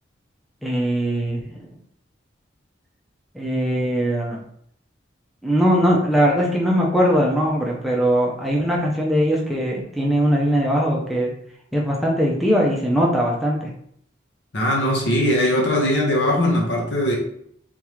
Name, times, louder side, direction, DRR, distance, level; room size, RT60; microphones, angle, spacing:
voice 1, 0.6-1.6 3.3-4.4 5.4-11.3 11.7-13.7, equal, ahead, -3 dB, 0.5 m, -20 dB
voice 2, 14.5-17.2, left 1 dB, 65° left, 0 dB, 1.0 m, -20 dB
3.6 x 3.5 x 3.1 m, 0.68 s
head